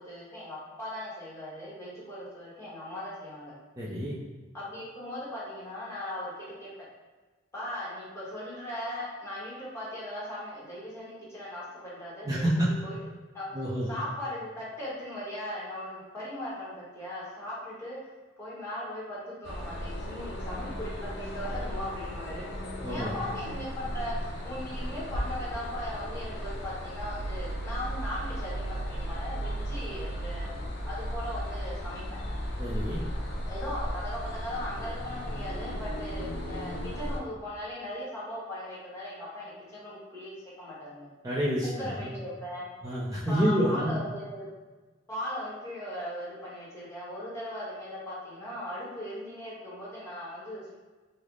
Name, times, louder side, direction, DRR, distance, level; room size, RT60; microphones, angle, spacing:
voice 1, 0.0-3.5 4.5-6.7 7.5-13.0 13.3-13.5 13.9-18.0 18.4-22.5 22.8-30.5 30.8-32.2 33.5-41.1 41.8-42.7 43.3-44.5 45.1-50.7, left 1 dB, 15° left, -8 dB, 1.1 m, -38 dB
voice 2, 3.8-4.2 12.2-12.7 13.5-13.9 22.8-23.1 32.6-33.0 41.2-42.1 42.8-44.0, equal, 20° right, -8 dB, 0.4 m, -28 dB
sound 1, 19.4-37.2, equal, 60° left, 0.5 m, -35 dB
3.2 x 2.0 x 3.7 m, 1.2 s
head